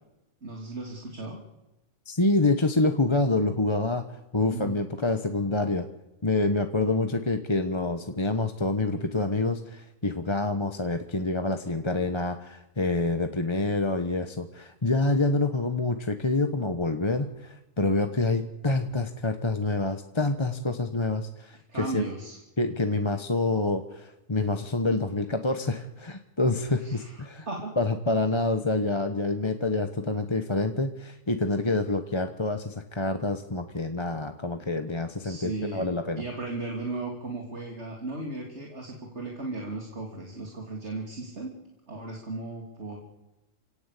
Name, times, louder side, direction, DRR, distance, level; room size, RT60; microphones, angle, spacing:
voice 1, 0.4-1.4 4.5-4.8 21.7-22.4 22.6-22.8 26.8-27.7 35.2-35.9 36.2-41.5 41.9-43.0, right 2 dB, 55° right, 1 dB, 3.3 m, -36 dB
voice 2, 2.0-4.0 4.3-5.9 6.2-22.0 22.6-27.5 27.8-36.2, left 2 dB, 20° left, 7 dB, 1.2 m, -27 dB
28.5 x 17.5 x 8.5 m, 0.99 s
omnidirectional pair, 1.4 m